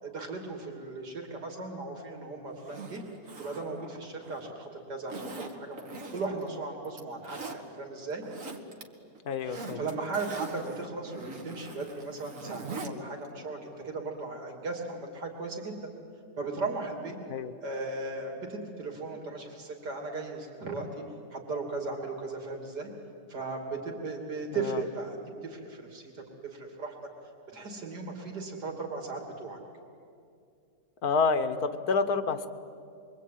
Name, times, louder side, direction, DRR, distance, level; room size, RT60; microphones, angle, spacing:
voice 1, 0.0-3.0 3.4-8.3 9.4-15.9 16.4-17.2 17.6-21.0 21.3-22.9 23.3-25.2 25.4-27.0 27.5-29.6, right 3 dB, 80° right, 2 dB, 3.6 m, -37 dB
Zipper (clothing), 2.6-4.5 5.1-6.5 6.8-7.6 8.1-8.8 9.1-12.9 13.2-13.3, right 3 dB, 50° right, 2.1 m, -42 dB
voice 2, 9.3-9.8 17.3-17.5 24.6-24.8 31.0-32.5, left 4 dB, 65° left, 10 dB, 1.6 m, -28 dB
27.5 x 23.0 x 9.3 m, 2.4 s
omnidirectional pair, 1.8 m